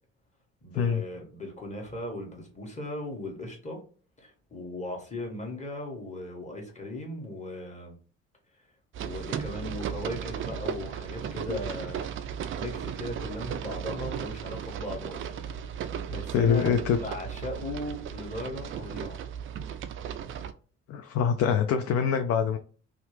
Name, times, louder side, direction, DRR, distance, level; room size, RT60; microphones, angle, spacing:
voice 1, 0.6-3.8 4.2-8.0 9.0-12.1 12.5-15.5 16.1-19.2, left 1 dB, 20° left, 1.4 m, -37 dB
sound 1, 8.9-20.5, right 8 dB, 35° right, 0.4 m, -36 dB
voice 2, 16.1-17.0 20.9-22.6, left 7 dB, 45° left, 0.4 m, -25 dB
2.8 x 2.4 x 3.2 m
hypercardioid pair, 55°, 35 cm